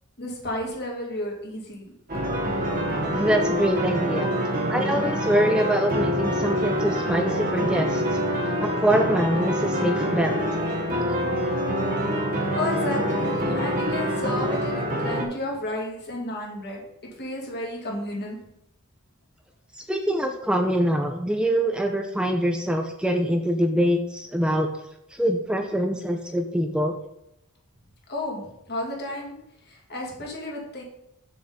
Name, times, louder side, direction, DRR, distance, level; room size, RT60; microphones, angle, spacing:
voice 1, 0.2-1.9 12.5-16.8 17.2-18.4 28.1-29.4 29.7-30.8, left 1 dB, 50° left, -1 dB, 2.2 m, -32 dB
sound 1, 2.1-15.3, equal, 40° right, 1.7 m, -25 dB
voice 2, 3.1-4.3 4.7-8.2 8.6-10.3 19.7-24.7 25.1-27.0, equal, 5° right, 3 dB, 0.5 m, -24 dB
7.0 x 6.9 x 4.1 m, 0.82 s
head